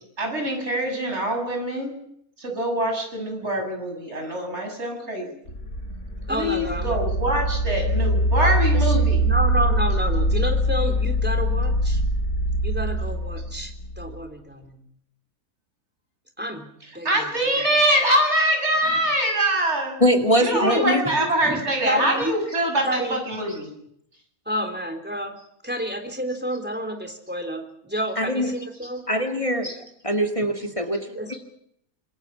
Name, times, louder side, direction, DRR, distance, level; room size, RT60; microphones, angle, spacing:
voice 1, 0.2-1.9 2.4-5.3 6.3-9.3 17.0-20.0 20.4-23.7 29.6-29.7, right 1 dB, 50° right, 3 dB, 7.4 m, -24 dB
sound 1, 5.5-14.2, equal, 75° left, 6.0 m, -23 dB
voice 2, 6.3-7.0 8.4-8.9 9.2-12.0 12.6-14.8 16.4-17.3 17.6-17.7 20.5-20.9 21.4-22.4 22.8-23.2 24.5-25.4 25.6-29.0 31.2-31.4, equal, 5° right, 6 dB, 3.7 m, -30 dB
voice 3, 20.0-21.0 28.2-28.5 29.1-29.7 30.0-31.0, equal, 25° left, 4 dB, 2.1 m, -22 dB
26.5 x 21.5 x 5.9 m, 0.71 s
omnidirectional pair, 1.5 m